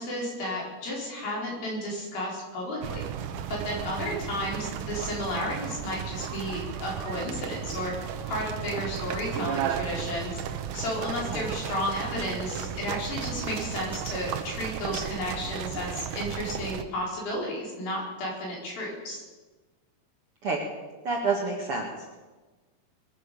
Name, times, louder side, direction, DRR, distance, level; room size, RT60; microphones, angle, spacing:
voice 1, 0.0-3.1 3.5-7.9 8.3-10.4 10.7-19.2, left 1 dB, 65° left, -3 dB, 6.1 m, -33 dB
sound 1, 2.8-16.8, right 9 dB, 75° right, 1.9 m, -34 dB
voice 2, 21.0-22.2, right 4 dB, 50° right, -1 dB, 1.9 m, -29 dB
21.5 x 9.6 x 7.0 m, 1.3 s
omnidirectional pair, 4.6 m